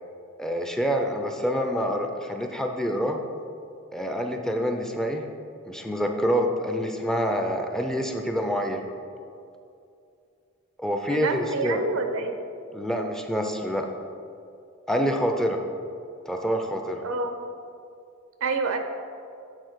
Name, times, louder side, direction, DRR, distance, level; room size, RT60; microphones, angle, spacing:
voice 1, 0.4-3.2 3.9-5.2 5.6-8.8 10.8-11.8 12.7-13.9 14.9-15.6 16.3-17.0, equal, 5° left, 3 dB, 0.4 m, -26 dB
voice 2, 11.1-12.4 17.0-17.4 18.4-18.8, right 4 dB, 85° right, 6 dB, 0.7 m, -28 dB
8.6 x 4.1 x 4.7 m, 2.5 s
head